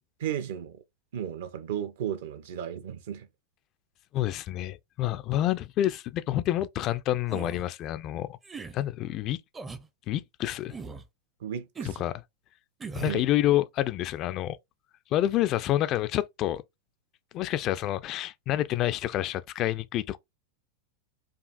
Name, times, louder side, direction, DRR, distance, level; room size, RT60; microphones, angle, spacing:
voice 1, 0.2-0.8 1.1-3.3 11.4-12.0 13.0-13.2, right 9 dB, 55° right, 0.6 m, -34 dB
voice 2, 4.1-8.4 8.7-9.4 10.1-10.8 12.0-12.1 12.9-14.6 15.1-16.6 17.3-20.2, left 13 dB, 35° left, 0.3 m, -28 dB
sound 1, 7.3-7.6 8.4-8.8 9.5-9.9 10.7-11.1 11.7-12.0 12.8-13.2, right 4 dB, 15° right, 0.5 m, -39 dB
5.1 x 2.3 x 2.4 m
figure-of-eight pair, 90°, 0 cm